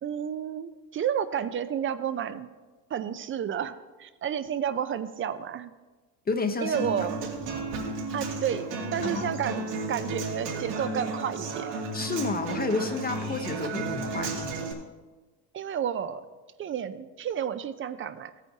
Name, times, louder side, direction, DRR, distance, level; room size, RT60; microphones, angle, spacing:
voice 1, 0.0-2.5 2.9-5.7 6.6-7.3 8.1-8.7 8.9-11.7 15.5-16.2 16.6-18.3, right 8 dB, 30° right, 13 dB, 0.4 m, -31 dB
voice 2, 6.3-6.9 9.0-9.3 11.9-14.5, left 3 dB, 20° left, 6 dB, 0.7 m, -30 dB
Human voice / Acoustic guitar, 6.7-14.7, right 3 dB, 80° right, 2.5 m, -33 dB
15.0 x 9.1 x 2.8 m, 1.3 s
supercardioid pair, 100°, 47 cm